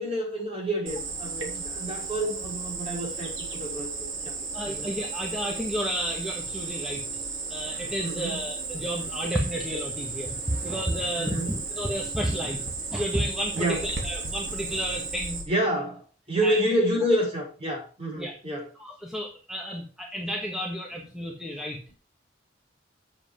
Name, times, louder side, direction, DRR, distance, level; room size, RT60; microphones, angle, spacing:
voice 1, 0.0-4.3 4.6-4.9 8.0-8.4 10.5-10.7 11.2-11.5 13.5-13.8 15.5-18.7, equal, 30° right, 5.2 m, -29 dB
Cricket, 0.9-15.4, right 4 dB, 80° right, 3.0 m, -34 dB
voice 2, 4.4-7.0 7.5-15.4 16.4-16.6 18.2-18.3 18.8-21.8, equal, 5° right, 1.5 m, -31 dB
8.0 x 7.7 x 5.0 m
head